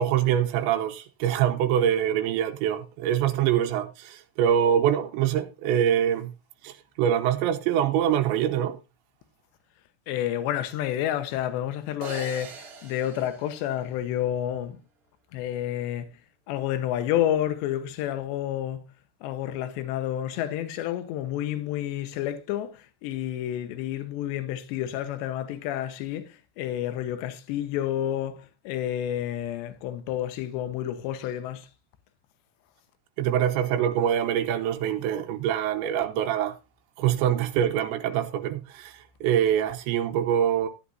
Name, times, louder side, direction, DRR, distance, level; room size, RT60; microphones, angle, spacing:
voice 1, 0.0-6.3 6.6-8.8 33.2-36.6 37.0-40.7, right 10 dB, 85° right, 3.2 m, -24 dB
voice 2, 10.1-14.8 15.3-16.1 16.5-18.8 19.2-31.7, left 11 dB, 80° left, 3.3 m, -30 dB
sound 1, 12.0-14.4, right 4 dB, 70° right, 1.2 m, -43 dB
14.5 x 10.0 x 2.7 m
omnidirectional pair, 5.0 m